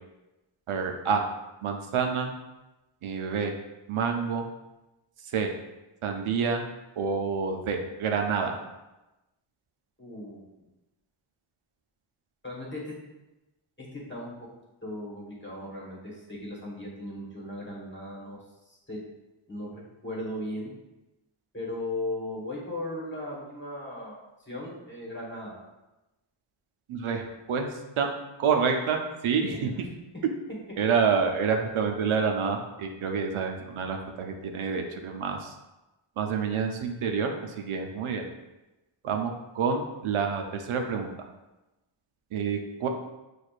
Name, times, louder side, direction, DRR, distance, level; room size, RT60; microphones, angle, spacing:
voice 1, 0.7-1.2 1.6-2.3 3.0-3.6 3.9-4.4 5.3-5.5 6.0-6.6 7.0-8.6 26.9-27.7 28.0-28.1 28.4-29.7 30.2-30.3 30.8-35.5 36.2-38.2 39.0-41.1 42.3-42.9, right 6 dB, 85° right, 4 dB, 0.6 m, -28 dB
voice 2, 10.0-10.4 12.4-12.9 13.8-14.3 14.8-18.4 18.7-19.0 19.5-20.7 21.5-24.2 24.5-25.6 29.4-29.8, left 1 dB, 25° left, -4 dB, 1.2 m, -37 dB
6.1 x 2.5 x 2.4 m, 1.0 s
wide cardioid pair, 90°, 49 cm